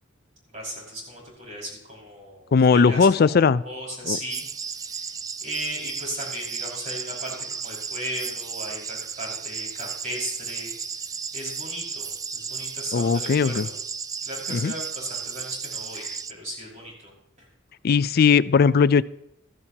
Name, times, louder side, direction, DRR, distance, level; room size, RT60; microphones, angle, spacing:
voice 1, 0.5-4.5 4.8-5.1 5.4-10.7 11.3-13.7 14.2-17.1, equal, 40° right, -3 dB, 5.5 m, -36 dB
voice 2, 2.5-3.6 4.1-4.2 12.9-13.7 14.5-14.7 17.8-19.0, left 5 dB, 55° left, 17 dB, 0.4 m, -18 dB
sound 1, 4.3-16.3, right 6 dB, 20° right, 0.4 m, -34 dB
15.5 x 14.0 x 2.9 m, 0.79 s
head